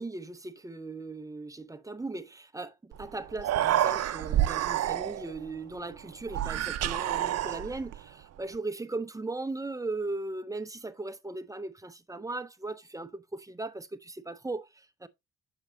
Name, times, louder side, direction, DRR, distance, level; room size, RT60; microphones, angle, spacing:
voice 1, 0.0-15.1, right 2 dB, 10° right, 0.7 m, -38 dB
Human voice, 2.9-3.0 3.3-5.4 6.3-8.0, right 12 dB, 55° right, 0.6 m, -28 dB
7.6 x 6.2 x 2.6 m
cardioid pair, 90°, 30 cm